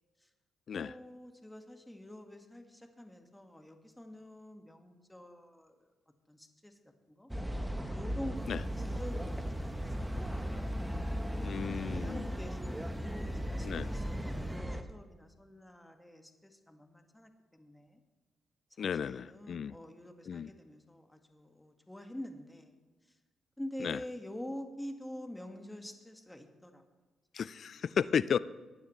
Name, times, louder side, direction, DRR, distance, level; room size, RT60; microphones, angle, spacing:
voice 1, 0.7-5.8 6.3-6.7 7.1-7.3 7.9-8.6 9.0-10.5 11.6-18.0 18.8-22.7 23.6-26.8, left 1 dB, 10° left, 4 dB, 1.8 m, -47 dB
sound 1, 7.3-14.8, equal, 10° right, 1.2 m, -37 dB
sound 2, 8.3-14.6, right 1 dB, 40° right, 4.1 m, -51 dB
voice 2, 11.4-12.3 13.6-13.9 18.8-19.7 20.3-20.5 23.8-24.0 27.3-28.4, left 7 dB, 60° left, 18 dB, 0.4 m, -34 dB
19.5 x 9.3 x 3.3 m, 1.2 s
hypercardioid pair, 50°, 0 cm